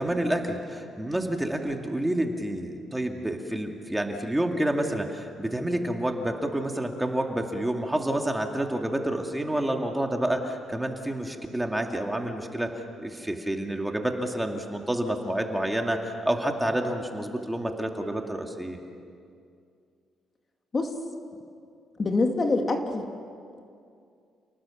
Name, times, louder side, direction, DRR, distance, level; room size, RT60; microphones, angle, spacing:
voice 1, 0.0-18.8, right 1 dB, 10° right, 3 dB, 2.3 m, -29 dB
voice 2, 22.0-23.1, left 3 dB, 35° left, 4 dB, 2.3 m, -25 dB
29.5 x 18.5 x 7.3 m, 2.4 s
cardioid pair, 90°, 0 cm